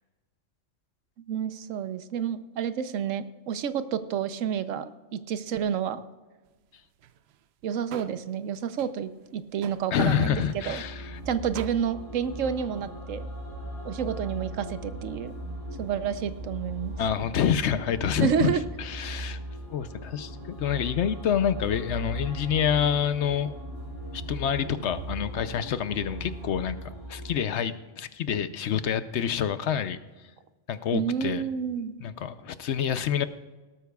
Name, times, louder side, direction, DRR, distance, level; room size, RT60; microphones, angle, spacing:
voice 1, 1.3-6.0 7.6-10.8 11.3-13.3 13.8-15.3 15.8-16.9 18.2-18.6 30.9-31.9, right 8 dB, 85° right, 12 dB, 1.1 m, -29 dB
sound 1, 6.5-6.6 6.8-7.4 7.6-8.3 8.6-8.9 9.3-10.2 10.5-10.7 11.0-11.1 11.5-11.7, right 9 dB, 65° right, 0.7 m, -44 dB
voice 2, 9.9-11.2 17.0-18.5 18.8-19.4 19.7-23.5 24.1-30.0 30.7-31.5 32.0-33.3, left 8 dB, 70° left, 12 dB, 0.9 m, -27 dB
sound 2, 10.2-27.3, right 1 dB, 50° right, 3.6 m, -38 dB
18.0 x 13.0 x 2.3 m, 1.2 s
omnidirectional pair, 1.3 m